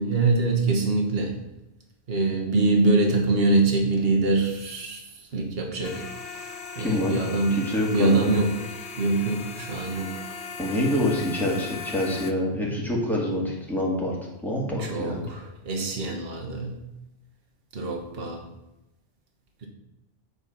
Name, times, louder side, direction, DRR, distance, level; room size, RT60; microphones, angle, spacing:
voice 1, 0.0-1.3 2.1-5.0 5.3-6.1 6.4-6.5 6.8-7.6 7.9-8.6 9.0-10.2 14.8-16.7 17.7-18.4, right 3 dB, 65° right, 0 dB, 1.4 m, -24 dB
sound 1, 5.8-12.3, left 5 dB, 90° left, 1.0 m, -38 dB
voice 2, 6.8-7.2 7.5-8.4 10.6-14.2 14.4-15.3, left 1 dB, ahead, -4 dB, 2.0 m, -26 dB
7.8 x 4.0 x 5.8 m, 0.93 s
omnidirectional pair, 1.1 m